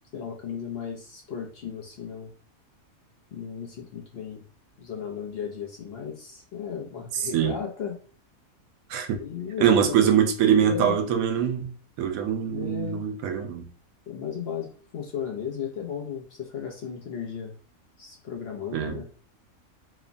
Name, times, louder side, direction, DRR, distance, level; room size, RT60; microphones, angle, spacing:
voice 1, 0.1-2.3 3.3-4.5 4.8-7.9 9.1-10.0 10.6-11.0 12.5-13.0 14.1-17.6 18.0-19.1, left 7 dB, 60° left, 0.7 m, -35 dB
voice 2, 7.2-7.6 8.9-9.2 9.6-13.7 18.7-19.0, right 8 dB, 90° right, 1.0 m, -23 dB
3.0 x 2.1 x 2.5 m
omnidirectional pair, 1.4 m